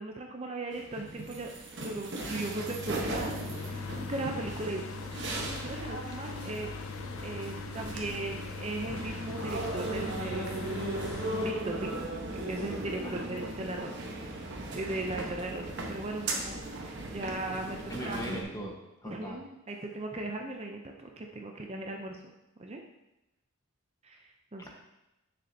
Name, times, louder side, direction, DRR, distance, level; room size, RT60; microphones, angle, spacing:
voice 1, 0.0-1.5 1.8-3.4 3.6-4.9 5.3-6.7 7.2-10.6 11.3-11.9 12.5-14.0 14.7-17.8 18.0-18.2 19.0-22.2 22.6-22.8 24.0-24.7, right 2 dB, 30° right, 2 dB, 0.6 m, -38 dB
sound 1, 0.7-18.4, right 2 dB, 55° right, 1.1 m, -37 dB
sound 2, 2.2-11.5, left 5 dB, 75° left, 0.4 m, -41 dB
voice 2, 13.0-13.4 17.9-18.7 19.0-19.4 24.6-24.7, right 1 dB, 15° left, 0 dB, 1.2 m, -40 dB
9.8 x 6.7 x 2.8 m, 0.93 s
head